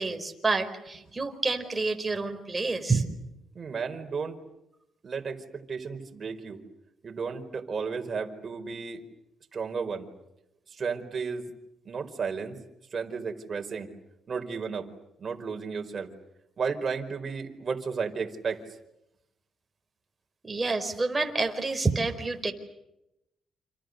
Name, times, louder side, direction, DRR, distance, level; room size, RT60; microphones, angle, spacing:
voice 1, 0.0-3.0 20.4-22.5, right 3 dB, 20° right, 6 dB, 4.6 m, -28 dB
voice 2, 3.5-4.4 5.0-6.6 7.0-9.0 9.5-10.1 10.7-11.5 11.8-12.6 12.9-13.9 14.3-14.9 15.2-16.1 16.6-18.6, right 5 dB, 40° right, 4 dB, 4.7 m, -33 dB
29.0 x 28.0 x 6.7 m, 0.86 s
cardioid pair, 90°, 0 cm